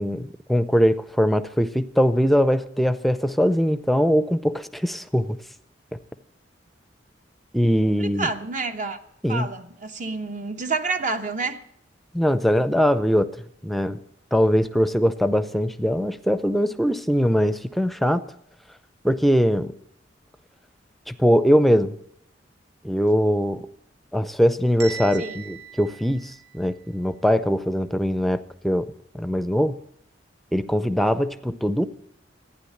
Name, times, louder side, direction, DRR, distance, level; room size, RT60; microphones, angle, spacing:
voice 1, 0.0-5.4 7.5-8.3 9.2-9.5 12.1-13.3 13.6-14.0 14.3-18.2 19.0-19.7 21.1-22.0 22.8-23.6 24.1-29.8 30.5-31.9, equal, ahead, 0.6 m, -21 dB
voice 2, 8.0-9.0 9.3-11.6 25.2-25.4, right 3 dB, 45° right, 1.0 m, -28 dB
Bell, 24.8-26.8, right 7 dB, 60° right, 4.3 m, -39 dB
15.0 x 10.0 x 8.6 m
head